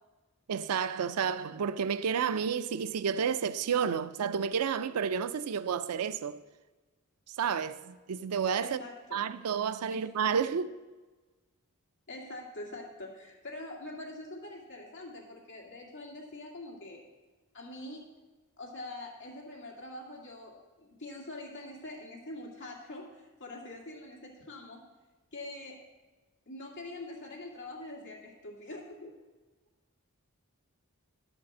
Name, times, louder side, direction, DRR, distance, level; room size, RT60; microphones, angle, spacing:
voice 1, 0.5-6.4 7.4-8.8 9.1-10.7, right 7 dB, 90° right, 0.4 m, -30 dB
voice 2, 8.6-9.2 9.9-10.0 12.1-17.0 17.5-18.1 18.6-24.8 25.3-25.8 26.5-29.1, left 2 dB, 55° left, 2.2 m, -44 dB
11.0 x 5.2 x 7.2 m
head